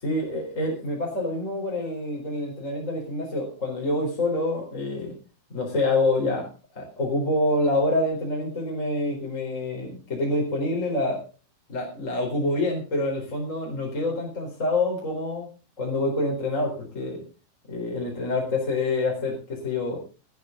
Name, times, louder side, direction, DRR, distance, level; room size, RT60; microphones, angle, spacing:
voice 1, 0.0-5.1 5.5-6.5 6.7-11.2 11.7-15.5 15.8-17.2 17.7-20.0, left 2 dB, 20° left, -2 dB, 4.2 m, -26 dB
18.5 x 11.0 x 3.9 m, 0.34 s
omnidirectional pair, 4.3 m